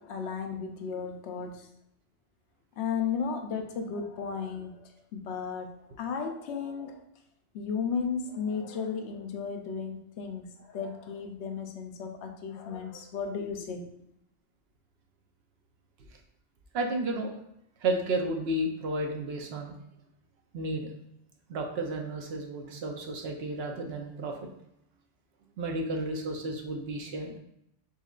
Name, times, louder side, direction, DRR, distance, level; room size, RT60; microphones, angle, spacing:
voice 1, 0.0-1.7 2.8-7.0 7.5-13.9, left 6 dB, 75° left, 4 dB, 0.9 m, -34 dB
voice 2, 16.7-17.3 17.8-19.7 20.5-20.9 21.5-24.4 25.6-27.4, right 2 dB, 65° right, 3 dB, 0.9 m, -32 dB
4.3 x 3.8 x 2.4 m, 0.78 s
omnidirectional pair, 1.2 m